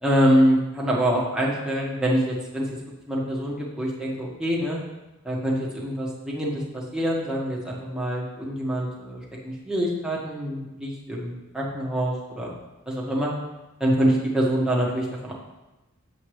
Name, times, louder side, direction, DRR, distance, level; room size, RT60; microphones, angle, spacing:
voice 1, 0.0-2.6 3.1-4.8 5.2-12.5 12.9-13.3 13.8-15.3, equal, 5° right, -5 dB, 1.6 m, -25 dB
8.1 x 7.6 x 3.2 m, 1.0 s
head